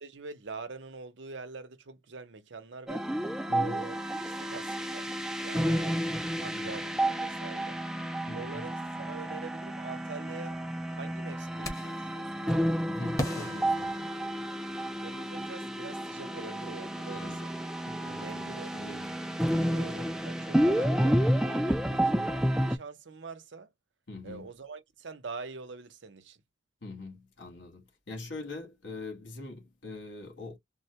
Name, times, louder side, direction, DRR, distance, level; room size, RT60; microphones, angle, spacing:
voice 1, 0.0-3.1 3.5-5.1 5.4-6.0 6.4-7.8 8.3-10.6 10.9-12.8 15.0-17.5 18.1-19.0 19.7-23.7 24.2-26.4, right 4 dB, 80° right, 0.7 m, -44 dB
sound 1, 2.9-22.8, right 1 dB, 5° right, 0.4 m, -31 dB
voice 2, 3.5-3.8 5.5-5.9 6.5-6.9 8.3-8.6 12.9-14.1 17.1-17.4 17.9-19.2 19.5-20.0 20.9-21.3 21.9-22.3 24.1-24.5 26.8-30.6, left 2 dB, 80° left, 1.4 m, -43 dB
sound 2, 11.6-12.1 13.2-14.7, left 1 dB, 15° left, 0.9 m, -37 dB
3.8 x 2.2 x 2.8 m
head